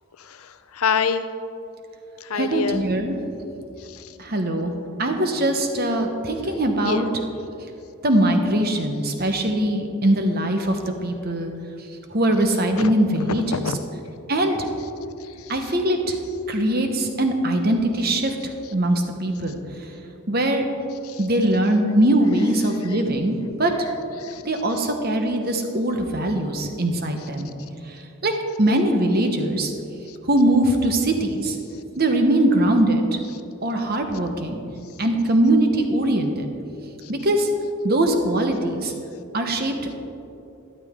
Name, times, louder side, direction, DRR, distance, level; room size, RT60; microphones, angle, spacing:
voice 1, 0.3-1.3 2.2-2.8 3.9-4.1 6.8-7.0 12.8-12.9 13.3-13.8 21.0-21.2 22.6-22.7 24.2-24.4 37.0-37.1, left 6 dB, 75° left, 11 dB, 0.6 m, -26 dB
voice 2, 2.3-3.2 4.2-4.7 5.0-7.1 8.0-11.5 12.1-13.6 14.3-14.6 15.5-16.2 16.5-19.6 20.3-20.7 21.2-23.7 24.4-27.5 28.2-28.3 28.6-29.7 30.3-31.6 32.0-33.0 33.6-34.6 35.0-36.5 37.1-37.5 37.8-38.9 39.3-39.9, right 1 dB, 45° right, 5 dB, 1.1 m, -21 dB
12.5 x 12.0 x 3.7 m, 2.8 s
head